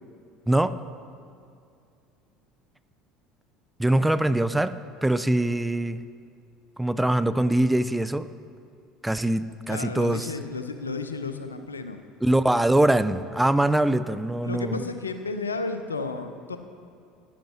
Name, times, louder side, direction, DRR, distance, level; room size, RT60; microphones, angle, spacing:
voice 1, 0.5-0.8 3.8-4.7 5.0-6.0 6.8-8.3 9.0-10.3 12.2-14.8, right 1 dB, 5° right, 13 dB, 0.4 m, -23 dB
voice 2, 9.7-12.0 14.4-16.6, left 3 dB, 90° left, 9 dB, 0.5 m, -32 dB
11.0 x 10.5 x 3.0 m, 2.4 s
hypercardioid pair, 70°, 0 cm